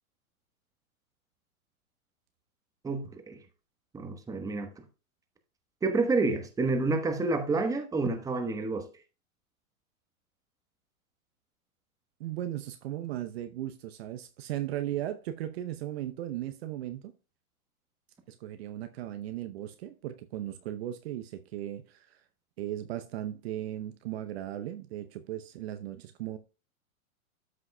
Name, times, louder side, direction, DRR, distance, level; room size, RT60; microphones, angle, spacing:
voice 1, 2.8-3.4 3.9-4.7 5.8-8.9, right 3 dB, 10° right, 1.0 m, -29 dB
voice 2, 12.2-17.1 18.3-22.2 22.6-26.4, right 12 dB, 45° right, 0.7 m, -37 dB
13.0 x 5.9 x 2.2 m
hypercardioid pair, 115°, 43 cm